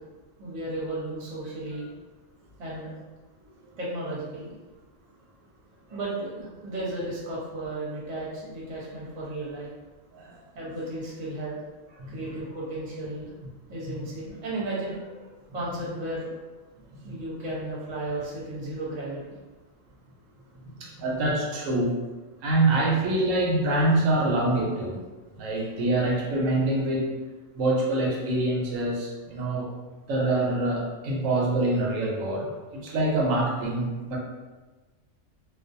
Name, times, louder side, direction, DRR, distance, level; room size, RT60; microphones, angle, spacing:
voice 1, 0.4-1.9 2.6-2.9 3.8-4.5 5.9-9.7 10.5-11.6 11.9-13.3 13.7-16.4 17.0-19.3, right 1 dB, 40° right, -6 dB, 0.8 m, -34 dB
voice 2, 20.6-21.9 22.4-25.0 25.3-27.1 27.5-29.7 30.1-34.2, right 2 dB, 85° right, -2 dB, 1.0 m, -25 dB
2.4 x 2.2 x 2.5 m, 1.2 s
omnidirectional pair, 1.3 m